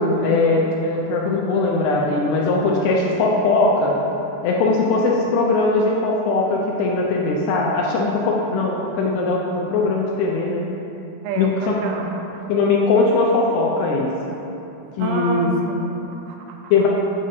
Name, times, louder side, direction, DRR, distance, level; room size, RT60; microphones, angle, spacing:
voice 1, 0.0-4.0 4.4-10.7 11.4-11.8 12.5-14.1 15.0-15.6 16.7-16.9, left 3 dB, 80° left, -2 dB, 2.6 m, -20 dB
voice 2, 11.2-12.5 15.0-16.7, right 4 dB, 85° right, 2 dB, 2.9 m, -29 dB
8.5 x 6.8 x 2.7 m, 2.9 s
omnidirectional pair, 5.2 m